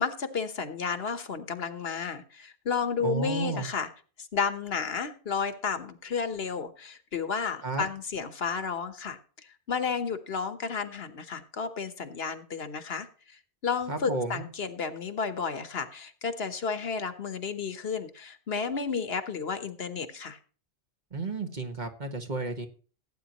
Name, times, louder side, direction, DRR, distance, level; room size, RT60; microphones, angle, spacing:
voice 1, 0.0-3.9 4.3-20.4, left 5 dB, 70° left, 10 dB, 1.4 m, -32 dB
voice 2, 3.0-3.7 7.6-7.8 13.9-14.5 21.1-22.7, right 3 dB, 45° right, 5 dB, 1.7 m, -32 dB
16.5 x 9.2 x 3.0 m, 0.39 s
omnidirectional pair, 1.1 m